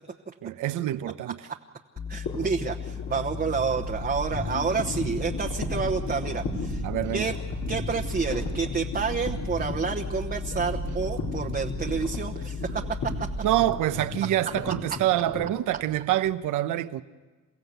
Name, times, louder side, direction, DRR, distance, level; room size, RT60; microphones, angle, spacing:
voice 1, 0.4-1.4 6.8-7.3 13.4-17.0, right 13 dB, 85° right, 0.9 m, -26 dB
sound 1, 2.0-13.4, left 7 dB, 25° left, 0.7 m, -36 dB
voice 2, 2.1-6.9 7.1-7.4 7.7-13.3 14.7-14.8, right 5 dB, 30° right, 1.0 m, -29 dB
sound 2, 2.2-16.3, left 3 dB, 80° left, 4.3 m, -36 dB
sound 3, 3.8-14.1, right 5 dB, 70° right, 2.3 m, -38 dB
29.5 x 15.5 x 8.1 m
cardioid pair, 90°, 30 cm